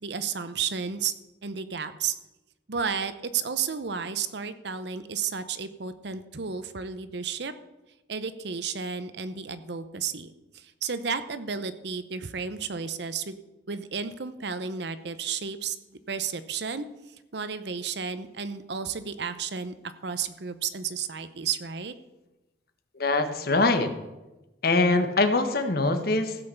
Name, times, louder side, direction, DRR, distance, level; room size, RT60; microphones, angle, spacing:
voice 1, 0.0-1.1 1.4-2.1 2.7-7.5 8.1-13.4 13.7-15.8 16.1-16.8 17.3-21.9, right 6 dB, 60° right, 12 dB, 0.7 m, -32 dB
voice 2, 23.0-23.9 24.6-26.4, left 2 dB, 55° left, 8 dB, 1.1 m, -23 dB
15.5 x 5.6 x 7.0 m, 1.0 s
head